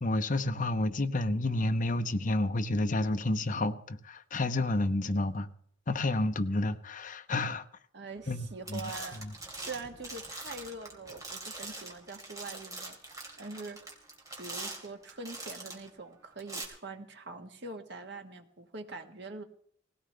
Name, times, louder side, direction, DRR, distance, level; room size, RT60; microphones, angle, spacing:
voice 1, 0.0-5.5 5.9-7.7 8.3-9.3, left 2 dB, 45° left, 0.8 m, -30 dB
voice 2, 7.9-9.2 9.5-13.8 14.4-19.4, right 3 dB, 65° right, 1.5 m, -44 dB
sound 1, 8.2-8.4 8.7-15.9 16.4-16.6, right 2 dB, 20° right, 3.1 m, -43 dB
19.0 x 17.0 x 3.4 m
head